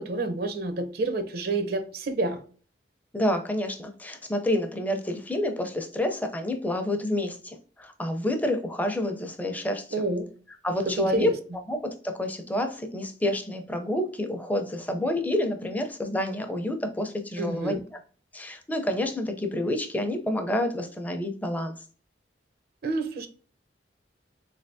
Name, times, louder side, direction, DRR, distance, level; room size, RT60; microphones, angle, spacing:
voice 1, 0.0-2.4 9.9-10.3 10.9-11.3 17.4-17.8 22.8-23.3, right 2 dB, 55° right, 0.5 m, -29 dB
voice 2, 3.1-10.0 10.6-11.3 11.7-17.8 18.3-21.7, left 1 dB, 10° left, 0.5 m, -28 dB
3.9 x 3.3 x 2.6 m
head